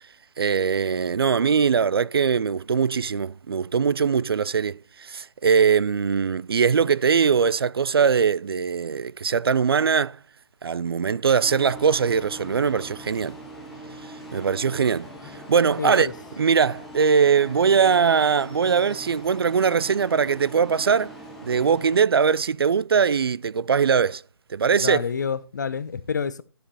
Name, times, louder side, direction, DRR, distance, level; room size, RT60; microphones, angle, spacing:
voice 1, 0.4-10.2 10.6-13.4 14.3-15.1 15.5-16.1 16.4-21.1 21.4-24.2 24.5-25.0, right 6 dB, 65° right, 0.4 m, -21 dB
sound 1, 11.4-22.0, right 1 dB, ahead, 0.8 m, -42 dB
voice 2, 15.8-16.1 24.8-26.4, left 6 dB, 45° left, 0.8 m, -28 dB
11.5 x 7.7 x 4.1 m
hypercardioid pair, 175°, 14 cm